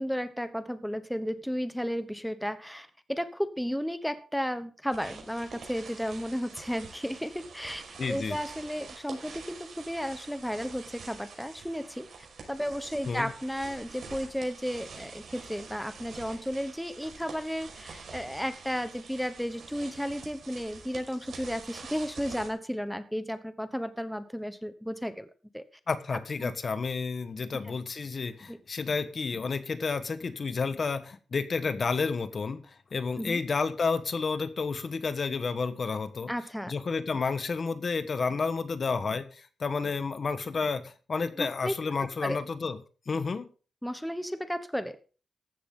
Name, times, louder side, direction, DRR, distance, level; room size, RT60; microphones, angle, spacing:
voice 1, 0.0-7.8 8.1-12.1 12.5-25.3 25.5-25.6 26.4-26.5 27.6-27.8 28.5-28.6 33.2-33.4 36.3-36.7 41.4-41.7 42.2-42.4 43.8-45.0, equal, ahead, 11 dB, 1.1 m, -33 dB
sound 1, 4.9-22.5, right 5 dB, 70° right, 5.1 m, -47 dB
voice 2, 8.0-8.4 13.1-13.3 25.9-36.3 36.7-42.8 43.1-43.5, left 4 dB, 50° left, 12 dB, 1.3 m, -31 dB
15.0 x 11.5 x 3.8 m, 0.37 s
cardioid pair, 95°, 0 cm